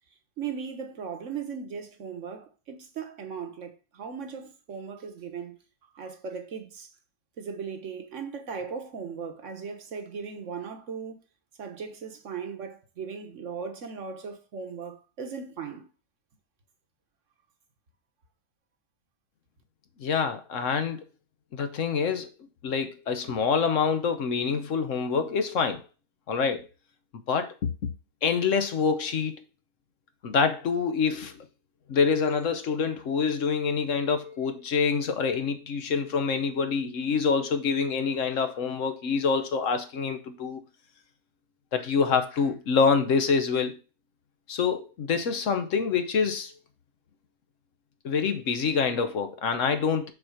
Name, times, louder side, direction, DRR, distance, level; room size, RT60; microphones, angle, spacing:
voice 1, 0.4-5.6 5.9-6.9 7.4-11.2 11.6-15.9, right 6 dB, 50° right, 1.4 m, -38 dB
voice 2, 20.0-21.0 21.5-22.3 22.6-25.8 26.3-26.7 27.3-27.7 28.2-29.4 30.2-31.4 31.9-40.6 41.7-43.8 44.5-46.5 48.0-50.1, left 5 dB, 55° left, 1.1 m, -26 dB
6.6 x 4.4 x 6.4 m
omnidirectional pair, 1.7 m